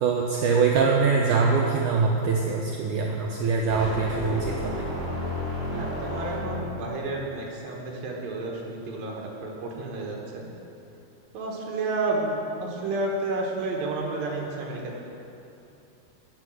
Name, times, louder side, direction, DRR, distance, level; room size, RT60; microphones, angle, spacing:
voice 1, 0.0-4.9, right 5 dB, 85° right, 0 dB, 1.8 m, -23 dB
sound 1, 3.7-6.9, left 1 dB, 20° right, 2.5 m, -32 dB
voice 2, 5.7-10.5 11.3-15.0, right 2 dB, 70° right, -1 dB, 3.0 m, -31 dB
9.7 x 8.8 x 6.3 m, 2.7 s
omnidirectional pair, 4.5 m